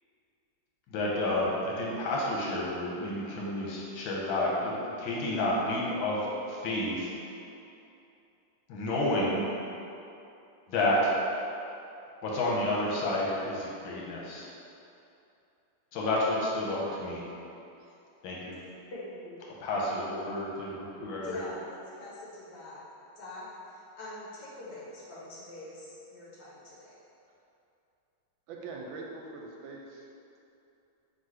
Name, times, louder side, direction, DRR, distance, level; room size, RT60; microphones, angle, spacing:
voice 1, 0.9-7.1 8.7-9.5 10.7-11.1 12.2-14.4 15.9-17.2 18.2-18.6 19.6-21.3, left 1 dB, 85° left, -4 dB, 1.5 m, -30 dB
voice 2, 18.9-19.4 21.2-22.8 23.2-27.0, left 2 dB, 65° left, -7 dB, 1.6 m, -43 dB
voice 3, 28.5-30.1, right 3 dB, 90° right, 0 dB, 1.4 m, -42 dB
3.7 x 2.6 x 4.7 m, 2.7 s
omnidirectional pair, 2.1 m